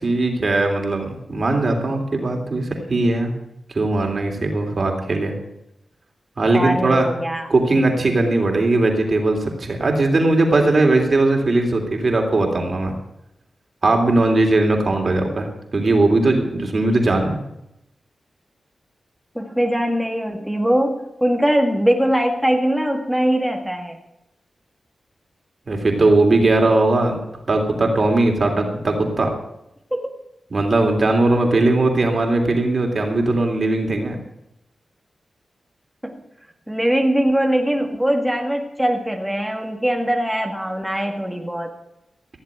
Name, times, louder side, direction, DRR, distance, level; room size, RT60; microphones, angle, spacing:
voice 1, 0.0-3.3 3.7-5.3 6.4-7.1 7.5-12.9 13.8-17.4 25.7-27.2 27.5-29.3 30.5-34.1, right 2 dB, 55° right, 3 dB, 3.3 m, -19 dB
voice 2, 6.5-7.5 19.4-24.0 29.9-30.0 36.0-36.2 36.7-41.7, equal, 5° right, 2 dB, 1.9 m, -21 dB
16.0 x 7.3 x 9.0 m, 0.85 s
cardioid pair, 50°, 0 cm